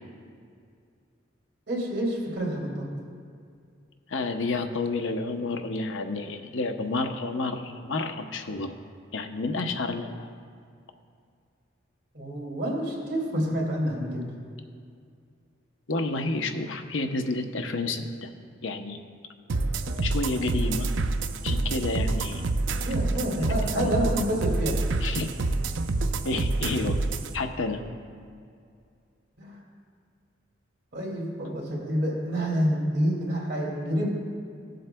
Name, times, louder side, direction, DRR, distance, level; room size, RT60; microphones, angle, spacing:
voice 1, 1.7-2.9 12.1-14.3 22.8-24.8 29.4-29.6 30.9-34.1, equal, 55° right, -3 dB, 2.4 m, -28 dB
voice 2, 4.1-8.7 9.1-10.3 15.9-18.3 18.6-19.0 19.9-20.9 21.4-22.4 23.4-23.5 23.7-23.9 25.0-25.3 26.2-27.0 27.3-27.8, left 3 dB, 80° left, 6 dB, 0.8 m, -30 dB
sound 1, 19.5-27.3, right 3 dB, 75° right, 0.5 m, -27 dB
19.0 x 7.8 x 2.2 m, 2.3 s
head